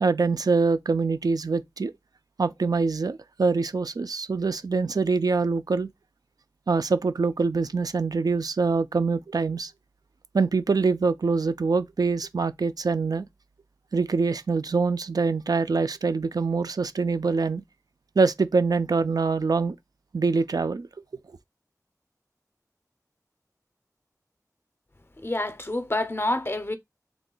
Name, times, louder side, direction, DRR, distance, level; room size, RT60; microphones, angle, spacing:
voice 1, 0.0-1.9 2.4-5.9 6.7-9.7 10.3-13.3 13.9-17.6 18.2-19.8 20.1-20.9, right 4 dB, 85° right, 0.3 m, -24 dB
voice 2, 25.2-26.8, left 1 dB, 35° left, 0.5 m, -28 dB
3.5 x 2.2 x 3.8 m
wide cardioid pair, 50°, 6 cm